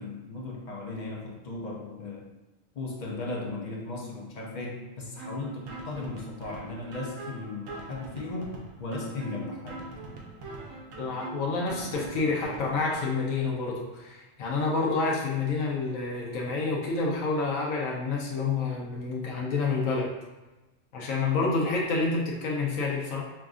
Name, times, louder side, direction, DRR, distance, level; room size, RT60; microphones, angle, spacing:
voice 1, 0.0-2.3 2.7-9.8, left 2 dB, 55° left, -1 dB, 0.5 m, -36 dB
sound 1, 5.2-13.2, right 1 dB, 85° right, 1.1 m, -42 dB
voice 2, 11.0-20.1 20.9-23.2, left 3 dB, 85° left, -3 dB, 1.1 m, -28 dB
5.7 x 2.4 x 2.4 m, 1.1 s
omnidirectional pair, 1.3 m